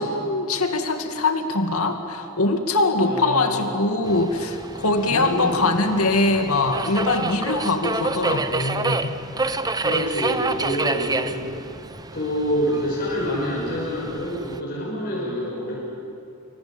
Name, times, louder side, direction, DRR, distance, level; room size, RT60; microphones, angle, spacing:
voice 1, 0.0-9.1, left 2 dB, 80° left, 5 dB, 2.3 m, -22 dB
voice 2, 3.0-3.6 5.1-5.6 9.8-11.4 12.1-15.8, equal, 45° left, -6 dB, 6.5 m, -27 dB
Subway metro underground, 4.0-14.6, right 3 dB, 20° right, 0.9 m, -29 dB
27.5 x 24.0 x 8.9 m, 2.7 s
head